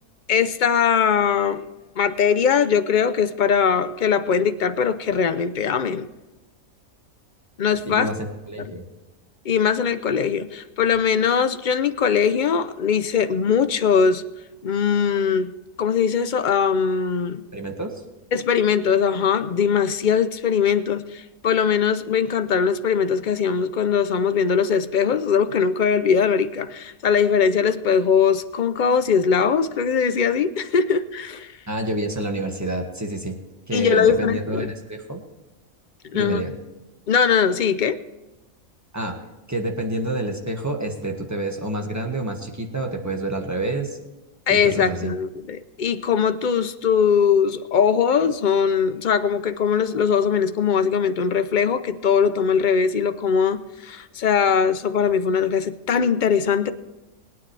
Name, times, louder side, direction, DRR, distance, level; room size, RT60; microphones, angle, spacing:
voice 1, 0.3-1.7 2.0-6.1 7.6-8.1 8.6-8.7 9.4-14.2 14.6-17.4 18.3-31.5 33.7-34.7 36.0-36.4 37.1-38.0 44.5-56.7, left 6 dB, 50° left, 12 dB, 0.6 m, -21 dB
voice 2, 7.9-8.9 17.5-18.0 31.7-33.4 33.7-35.2 36.1-36.5 38.9-39.2 39.5-44.0 44.5-45.1, right 1 dB, 10° right, 2 dB, 1.6 m, -28 dB
21.0 x 9.4 x 3.3 m, 1.1 s
omnidirectional pair, 1.5 m